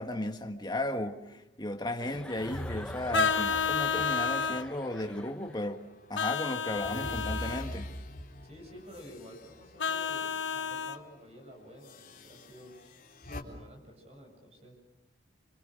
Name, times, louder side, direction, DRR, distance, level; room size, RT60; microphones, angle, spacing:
voice 1, 0.0-5.8 6.1-7.9, left 1 dB, 20° left, 1.6 m, -35 dB
Chuckle chortle, 2.0-5.7, left 1 dB, 5° left, 1.1 m, -46 dB
sound 1, 2.3-5.7 6.1-10.5 10.8-11.0 11.8-13.4, left 1 dB, 45° left, 3.8 m, -44 dB
Vehicle horn car horn honking, 3.1-4.7 6.1-7.6 9.8-11.0, left 6 dB, 80° left, 1.1 m, -30 dB
voice 2, 8.4-12.7 13.3-14.8, equal, 35° right, 7.4 m, -51 dB
26.5 x 26.0 x 6.4 m
head